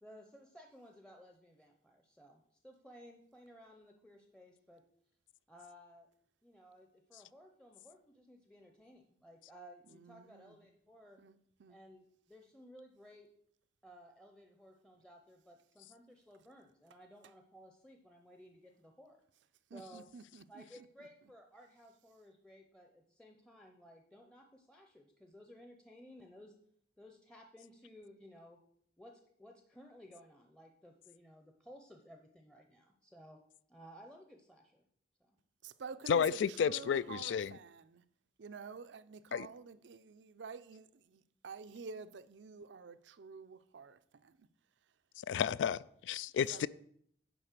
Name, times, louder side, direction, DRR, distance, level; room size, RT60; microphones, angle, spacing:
voice 1, 0.0-4.8 5.5-6.1 6.4-11.2 11.7-13.3 13.8-19.2 19.7-20.1 20.5-26.5 27.0-28.6 29.0-33.4 33.7-34.9 35.2-35.4, equal, 5° left, 0.6 m, -57 dB
voice 2, 9.9-10.7 11.2-11.8 19.7-21.1 35.6-38.0 38.4-44.5 46.4-46.7, right 5 dB, 80° right, 0.5 m, -50 dB
voice 3, 36.1-37.5 39.3-39.5 45.2-46.7, left 7 dB, 80° left, 0.3 m, -32 dB
10.0 x 4.1 x 6.6 m
head